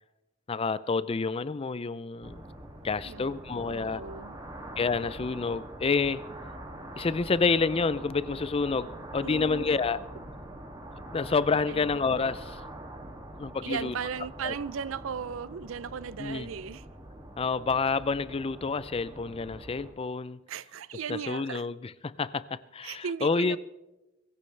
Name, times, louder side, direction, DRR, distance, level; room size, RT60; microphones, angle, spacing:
voice 1, 0.5-2.4 2.8-4.0 4.8-6.2 7.0-10.0 11.1-12.6 13.4-13.9 14.4-14.5 16.2-16.5 17.4-20.4 21.1-23.6, left 4 dB, 30° left, 0.4 m, -28 dB
sound 1, 2.2-19.9, right 1 dB, 20° right, 2.3 m, -44 dB
voice 2, 3.6-4.4 9.2-9.7 11.7-12.0 13.6-16.8 20.5-21.7 22.8-23.6, right 7 dB, 80° right, 0.5 m, -36 dB
23.0 x 15.5 x 3.3 m
head